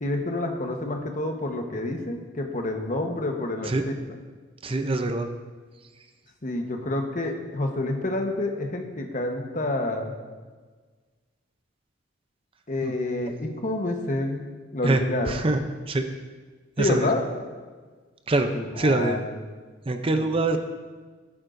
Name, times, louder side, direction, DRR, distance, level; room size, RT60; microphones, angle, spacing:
voice 1, 0.0-3.9 6.4-10.2 12.7-15.4 16.8-17.2 18.5-19.5 20.2-20.6, left 2 dB, 40° left, 3 dB, 1.1 m, -28 dB
voice 2, 4.6-5.3 12.8-12.9 14.8-15.6 15.9-16.0 16.8-17.1 18.3-18.5 18.8-19.2 19.9-20.6, right 2 dB, 25° right, 7 dB, 0.5 m, -24 dB
14.0 x 11.0 x 2.6 m, 1.4 s
head